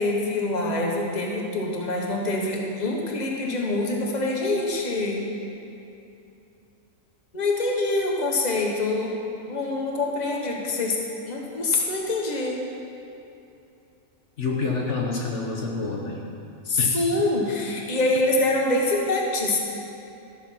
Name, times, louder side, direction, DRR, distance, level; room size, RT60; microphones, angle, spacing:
voice 1, 0.0-5.2 7.3-9.2 9.5-11.0 11.3-12.7 16.6-19.6, left 2 dB, 35° left, -1 dB, 1.4 m, -25 dB
voice 2, 14.4-16.2 16.8-17.0, left 4 dB, 60° left, -1 dB, 1.4 m, -27 dB
14.0 x 7.0 x 5.9 m, 2.8 s
omnidirectional pair, 1.4 m